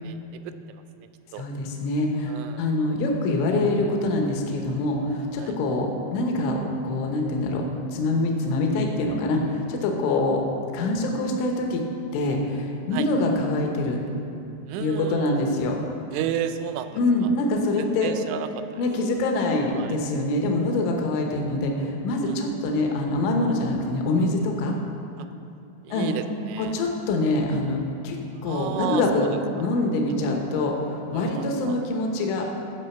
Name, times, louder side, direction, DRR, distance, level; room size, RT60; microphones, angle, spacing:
voice 1, 0.0-1.5 2.3-2.7 5.4-5.6 12.9-13.1 14.7-15.4 16.1-17.3 17.8-18.8 19.7-20.0 22.2-22.4 25.2-25.3 25.8-26.8 28.4-29.4 31.1-31.8 32.4-32.5, right 9 dB, 85° right, 9 dB, 3.0 m, -33 dB
voice 2, 1.4-7.6 7.9-10.4 10.7-11.8 12.1-14.0 14.8-15.8 16.9-18.1 18.8-24.7 25.9-26.1 26.6-28.2 28.4-29.3 29.6-32.5, left 2 dB, 80° left, 1 dB, 3.4 m, -25 dB
14.0 x 5.1 x 7.0 m, 2.8 s
omnidirectional pair, 5.5 m